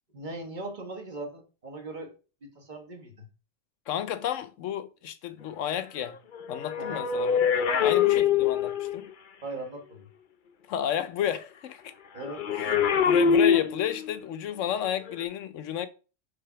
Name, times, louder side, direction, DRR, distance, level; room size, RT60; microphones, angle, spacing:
voice 1, 0.1-2.1 2.4-3.3 6.8-7.0 7.7-7.9 9.4-10.1 12.1-12.4, right 2 dB, 40° right, 1.5 m, -39 dB
voice 2, 3.9-6.2 6.5-7.5 7.8-9.1 10.7-11.9 12.6-15.9, left 10 dB, 75° left, 1.0 m, -32 dB
sound 1, 6.3-9.1 12.2-14.2 15.0-15.2, left 7 dB, 50° left, 0.7 m, -24 dB
5.1 x 4.1 x 5.7 m
omnidirectional pair, 1.3 m